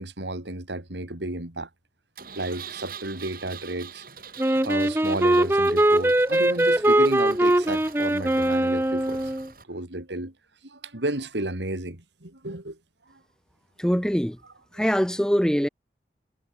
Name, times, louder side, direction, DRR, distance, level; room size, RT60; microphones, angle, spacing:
voice 1, 0.0-1.7 2.3-4.0 4.6-9.2 9.7-10.3 10.6-12.8, right 1 dB, 90° right, 3.3 m, -32 dB
Engine, 2.2-9.6, right 6 dB, 50° right, 6.8 m, -44 dB
Wind instrument woodwind instrument, 4.4-9.5, right 1 dB, 15° right, 0.7 m, -21 dB
voice 2, 13.8-14.4 14.8-15.7, equal, 5° left, 1.5 m, -23 dB
head